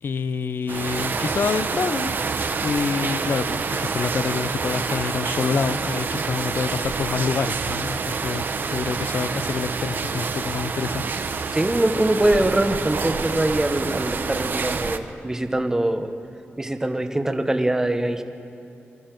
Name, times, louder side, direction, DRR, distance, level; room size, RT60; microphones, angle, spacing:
voice 1, 0.0-2.2 2.6-11.1, left 5 dB, 55° left, 13 dB, 0.6 m, -27 dB
sound 1, 0.7-15.0, right 5 dB, 50° right, 0.7 m, -27 dB
voice 2, 11.5-16.1 16.6-18.2, right 1 dB, 10° right, 7 dB, 0.8 m, -23 dB
23.0 x 13.5 x 4.5 m, 2.7 s
wide cardioid pair, 150°, 4 cm